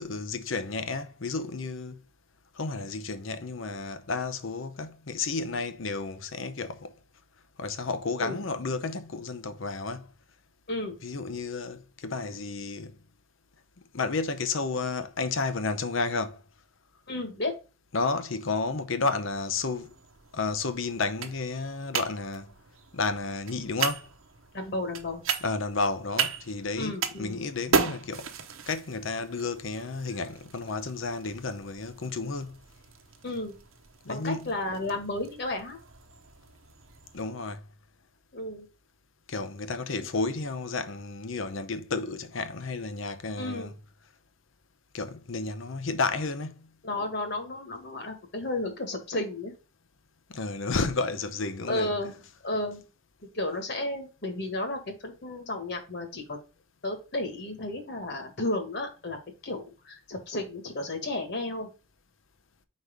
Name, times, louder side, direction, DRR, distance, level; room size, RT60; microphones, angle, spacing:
voice 1, 0.0-2.0 2.5-6.9 7.6-10.1 11.0-13.0 13.9-16.4 17.9-19.9 20.3-22.5 22.9-24.1 25.4-28.3 28.7-32.6 34.0-34.6 37.1-37.6 39.3-43.7 44.9-46.7 50.3-51.9, left 3 dB, 70° left, 0.7 m, -32 dB
voice 2, 17.1-17.6 24.5-25.2 26.8-27.4 33.2-33.6 34.0-35.8 38.3-38.7 40.0-40.1 43.4-43.7 46.8-49.5 51.7-52.8 53.2-56.4 56.8-59.2 59.4-61.7, left 2 dB, 55° left, 1.6 m, -33 dB
sound 1, 19.3-37.2, right 5 dB, 75° right, 0.9 m, -36 dB
4.8 x 4.1 x 5.1 m
head